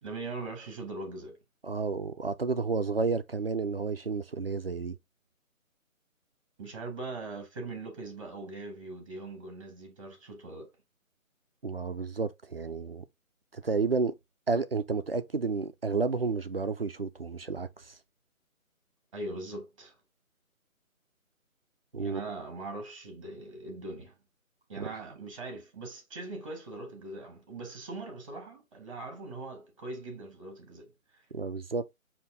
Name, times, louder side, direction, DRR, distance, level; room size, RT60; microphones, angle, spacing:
voice 1, 0.0-1.4 6.6-10.7 19.1-19.9 21.9-24.2 24.7-30.9, right 2 dB, 25° right, 1.2 m, -41 dB
voice 2, 1.6-5.0 11.6-13.0 13.5-14.1 14.5-17.7 21.9-22.2 24.8-24.9 31.3-31.8, right 4 dB, 45° right, 0.4 m, -31 dB
5.2 x 2.8 x 3.4 m
figure-of-eight pair, 165°, 42 cm